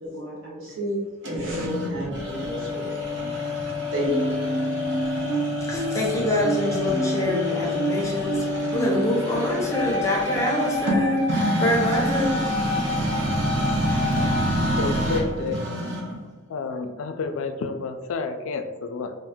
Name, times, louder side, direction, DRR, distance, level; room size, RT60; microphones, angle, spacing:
voice 1, 0.0-3.1 3.9-4.3, equal, 85° right, -4 dB, 1.0 m, -30 dB
sound 1, 1.2-16.2, left 1 dB, 65° right, 0.7 m, -27 dB
sound 2, 4.0-9.1, right 3 dB, 15° right, 1.3 m, -29 dB
voice 2, 5.6-12.4 13.1-13.2, left 1 dB, 15° left, -2 dB, 0.5 m, -26 dB
Wind instrument woodwind instrument, 9.7-14.6, left 3 dB, 35° right, 1.0 m, -30 dB
voice 3, 14.8-15.6 16.5-19.2, left 4 dB, 90° left, 8 dB, 0.3 m, -30 dB
2.6 x 2.0 x 3.4 m, 1.3 s
head